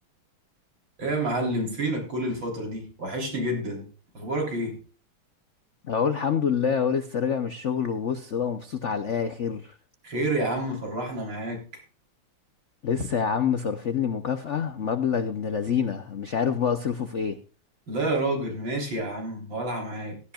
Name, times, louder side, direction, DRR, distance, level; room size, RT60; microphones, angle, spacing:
voice 1, 1.0-3.9 4.1-4.8 10.0-11.8 17.9-20.2, right 1 dB, 60° right, 1 dB, 4.3 m, -29 dB
voice 2, 5.8-9.8 12.8-17.4, left 7 dB, 65° left, 9 dB, 0.7 m, -26 dB
16.5 x 13.0 x 2.4 m, 0.37 s
omnidirectional pair, 2.4 m